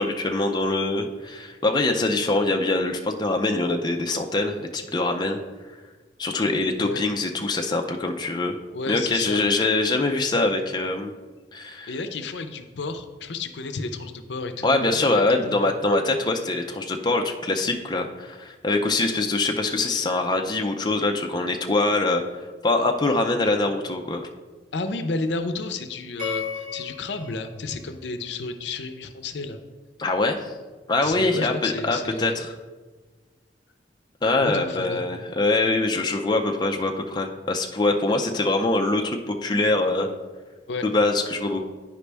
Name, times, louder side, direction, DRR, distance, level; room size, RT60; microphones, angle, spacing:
voice 1, 0.0-5.4 6.2-8.5 8.9-11.1 11.5-11.9 14.6-22.2 22.6-24.3 30.0-30.4 30.9-32.5 34.2-40.1 40.8-41.6, left 2 dB, 25° left, 3 dB, 0.5 m, -23 dB
voice 2, 8.7-9.4 11.9-15.6 24.7-29.6 31.0-32.4 34.4-35.0 40.7-40.8, left 3 dB, 80° left, 8 dB, 0.6 m, -31 dB
sound 1, 26.2-28.6, left 6 dB, 50° right, 2.3 m, -35 dB
9.5 x 5.1 x 3.4 m, 1.3 s
head